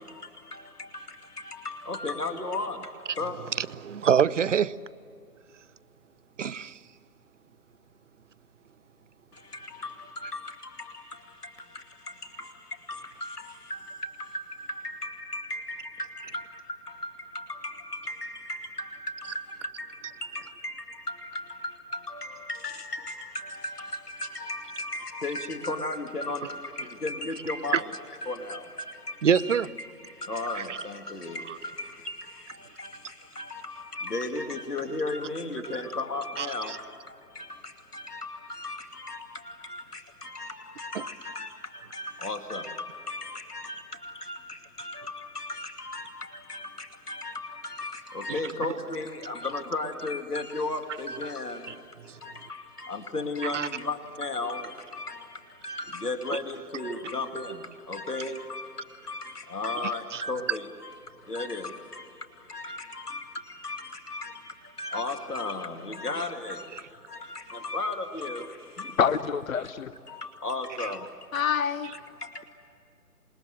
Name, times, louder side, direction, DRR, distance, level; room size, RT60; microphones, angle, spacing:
voice 1, 0.0-3.4 9.3-27.9 28.2-69.0 70.1-71.4 71.9-72.4, left 2 dB, 85° left, 2.6 m, -36 dB
voice 2, 3.6-4.8 6.4-6.8 27.7-27.8 29.2-29.7 30.7-30.8 36.4-36.8 40.9-41.0 48.3-48.4 53.5-53.7 60.1-60.2, right 7 dB, 55° right, 0.7 m, -25 dB
voice 3, 69.0-69.9 71.3-71.9, left 7 dB, 60° left, 0.9 m, -26 dB
27.5 x 22.0 x 7.8 m
figure-of-eight pair, 145°, 45 cm